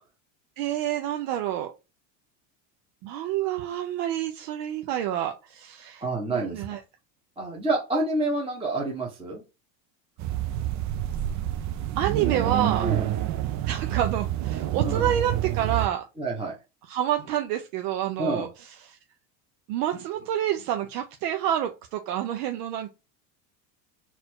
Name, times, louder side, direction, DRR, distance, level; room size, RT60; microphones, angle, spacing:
voice 1, 0.6-1.7 3.0-6.8 12.0-12.9 13.6-16.1 16.9-19.0 19.7-22.9, right 11 dB, 70° right, 0.7 m, -28 dB
voice 2, 6.0-6.6 7.4-9.4 12.8-13.1 14.8-15.1 16.2-16.5 18.2-18.5, right 2 dB, 10° right, 1.0 m, -28 dB
sound 1, 10.2-15.9, right 12 dB, 35° right, 0.5 m, -28 dB
4.2 x 2.6 x 4.4 m
supercardioid pair, 110°, 49 cm